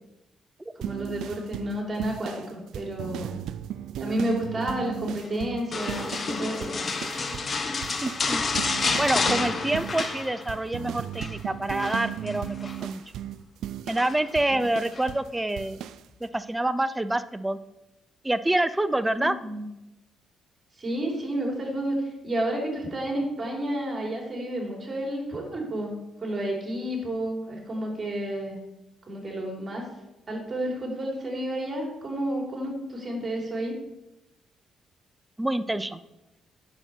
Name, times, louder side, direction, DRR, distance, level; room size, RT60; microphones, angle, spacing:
voice 1, 0.8-3.4 4.0-6.8 14.5-14.6 19.1-19.6 20.8-22.0 22.2-25.9 26.2-28.6 29.1-29.8 30.3-33.8, right 1 dB, 30° right, -1 dB, 3.4 m, -31 dB
sound 1, 0.8-6.4 6.6-7.6 7.8-15.3 15.6-16.0, right 11 dB, 80° right, 0.3 m, -36 dB
sound 2, 5.7-10.7 11.0-11.4 11.8-12.8 14.0-14.4 14.9-15.1, left 4 dB, 40° left, 1.0 m, -29 dB
voice 2, 8.0-8.4 9.0-13.0 13.9-15.8 16.2-17.6 18.2-19.4 35.4-36.0, right 1 dB, 10° right, 13 dB, 0.5 m, -27 dB
9.6 x 6.7 x 4.5 m, 0.94 s
cardioid pair, 90°, 0 cm